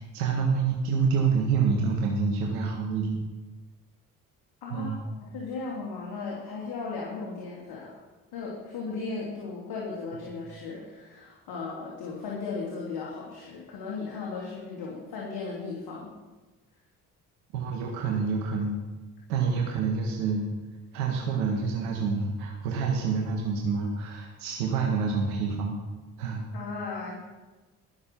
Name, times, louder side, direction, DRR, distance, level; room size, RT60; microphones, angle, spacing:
voice 1, 0.0-3.2 4.7-5.0 17.5-18.8 19.3-20.5 20.9-25.8 26.2-26.4, right 5 dB, 80° right, 0 dB, 1.8 m, -27 dB
voice 2, 4.6-7.9 8.3-16.1 26.5-27.2, left 4 dB, 60° left, -4 dB, 3.2 m, -36 dB
19.5 x 7.0 x 5.4 m, 1.2 s
hypercardioid pair, 50°, 44 cm